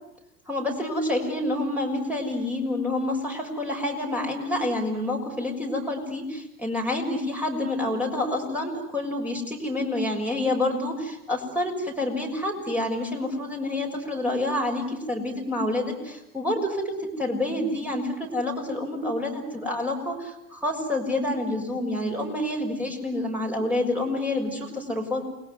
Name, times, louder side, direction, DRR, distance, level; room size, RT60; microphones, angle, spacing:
voice 1, 0.5-25.2, left 1 dB, 5° right, 0 dB, 6.3 m, -28 dB
29.0 x 21.0 x 9.5 m, 0.89 s
figure-of-eight pair, 75°, 45 cm